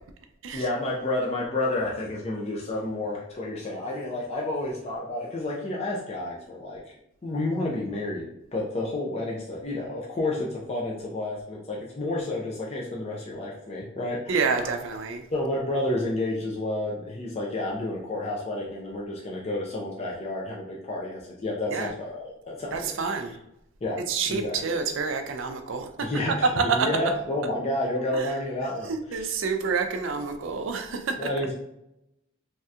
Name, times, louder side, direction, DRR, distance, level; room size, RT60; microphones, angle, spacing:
voice 1, 0.5-6.8 7.2-14.4 15.3-22.8 23.8-24.0 24.3-24.6 26.0-29.3 31.2-31.5, left 2 dB, 30° left, -3 dB, 0.4 m, -30 dB
voice 2, 14.3-15.2 21.7-21.9 22.7-23.4 24.1-26.9 28.1-28.3 28.8-31.1, right 5 dB, 70° right, 6 dB, 0.4 m, -28 dB
3.2 x 2.7 x 2.4 m, 0.82 s
head